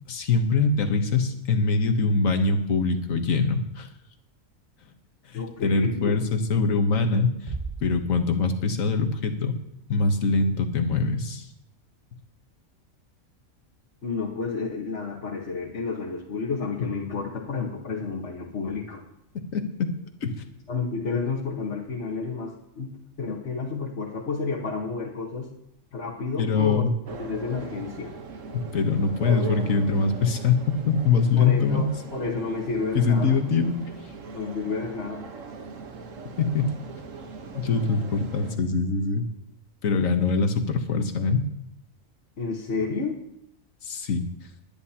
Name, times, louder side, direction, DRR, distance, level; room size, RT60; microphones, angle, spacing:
voice 1, 0.1-3.9 5.3-7.5 7.8-9.5 9.9-11.5 19.3-19.9 20.2-20.5 26.4-26.9 28.5-31.9 32.9-33.8 36.4-36.7 37.5-39.3 39.8-41.4 43.8-44.3, left 4 dB, 80° left, 6 dB, 1.6 m, -23 dB
voice 2, 5.3-6.2 14.0-19.0 20.7-22.9 23.2-25.5 25.9-26.8 27.1-28.1 31.4-33.4 34.3-35.2 42.4-43.2, left 4 dB, 60° left, -4 dB, 1.7 m, -30 dB
Bass drum, 7.5-8.9, right 4 dB, 25° right, 0.7 m, -37 dB
sound 1, 27.0-38.6, right 4 dB, 70° right, 1.5 m, -39 dB
21.0 x 10.5 x 2.9 m, 0.80 s
omnidirectional pair, 1.4 m